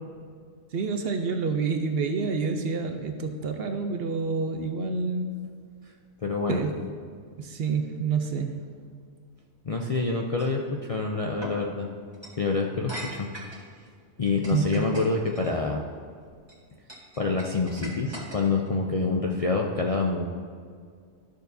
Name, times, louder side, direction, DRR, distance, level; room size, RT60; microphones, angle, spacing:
voice 1, 0.7-5.4 6.5-6.8 7.4-8.8 14.5-15.0, right 4 dB, 60° right, 6 dB, 0.7 m, -28 dB
voice 2, 6.2-6.6 9.6-10.6 10.9-11.9 12.4-13.6 14.2-15.9 17.2-20.2, left 3 dB, 55° left, 0 dB, 0.3 m, -27 dB
sound 1, 10.4-10.6 11.4-11.6 12.1-12.4 12.9-13.6 14.2-15.5 16.2-16.5 16.9-18.7, right 1 dB, 20° right, 1.5 m, -40 dB
12.5 x 6.6 x 2.7 m, 2.1 s
omnidirectional pair, 1.3 m